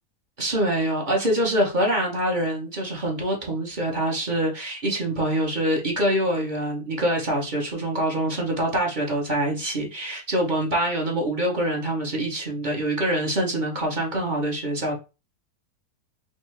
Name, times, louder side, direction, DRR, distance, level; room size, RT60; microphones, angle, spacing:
voice 1, 0.4-14.9, right 1 dB, 35° right, 0 dB, 1.0 m, -25 dB
5.3 x 2.1 x 3.2 m, 0.29 s
omnidirectional pair, 1.6 m